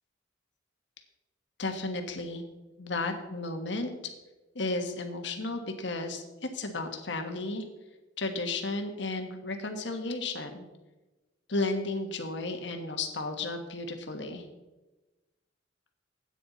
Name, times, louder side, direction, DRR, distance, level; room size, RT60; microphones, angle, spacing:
voice 1, 1.6-2.4 2.8-3.9 4.5-7.6 8.2-10.7 11.5-14.4, left 2 dB, 65° left, 5 dB, 1.5 m, -33 dB
13.0 x 9.2 x 4.2 m, 1.1 s
head